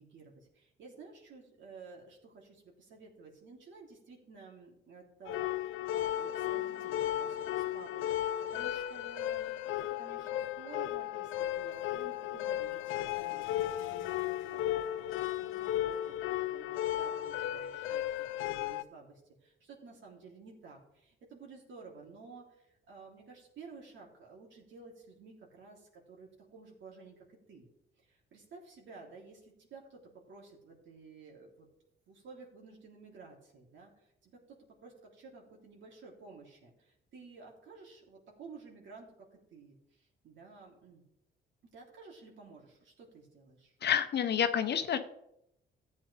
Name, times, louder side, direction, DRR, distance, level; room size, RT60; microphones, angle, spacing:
voice 1, 0.0-27.7 28.0-30.0 30.3-31.7 32.1-41.0 41.7-43.7, right 4 dB, 70° right, -1 dB, 3.3 m, -53 dB
sound 1, 5.3-18.8, left 12 dB, 85° left, 0.5 m, -35 dB
voice 2, 43.8-45.0, left 8 dB, 55° left, 9 dB, 1.0 m, -28 dB
14.0 x 8.6 x 3.4 m, 0.80 s
cardioid pair, 90°, 20 cm